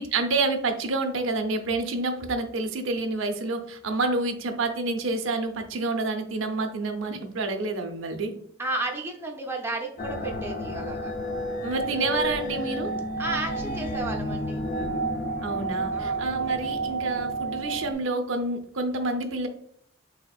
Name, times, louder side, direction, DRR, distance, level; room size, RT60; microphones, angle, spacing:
voice 1, 0.0-8.3 11.6-12.9 15.4-19.5, right 3 dB, 80° right, 5 dB, 0.6 m, -28 dB
voice 2, 8.6-11.1 13.2-14.6 15.9-16.2, right 2 dB, 10° right, 0 dB, 0.5 m, -33 dB
sound 1, 10.0-17.9, right 1 dB, 45° left, 0.5 m, -30 dB
4.2 x 3.4 x 2.3 m, 0.65 s
head